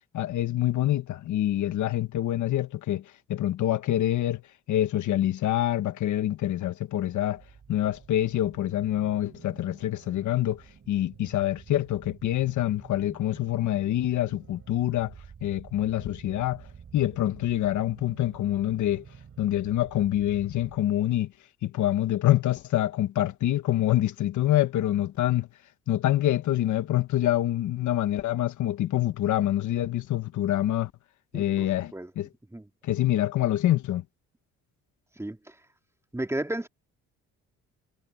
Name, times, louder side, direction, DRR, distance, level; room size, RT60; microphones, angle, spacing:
voice 1, 0.1-3.0 3.3-4.4 4.7-7.4 7.7-15.1 15.4-16.6 16.9-19.0 19.4-21.3 21.6-25.5 25.9-30.9 31.3-32.3 32.8-34.0, left 13 dB, 75° left, 1.3 m, -26 dB
sound 1, 7.0-20.8, right 7 dB, 50° right, 7.8 m, -50 dB
voice 2, 31.3-32.1 32.5-32.6 35.2-35.5 36.1-36.7, right 1 dB, 10° right, 2.8 m, -33 dB
cardioid pair, 90°, 30 cm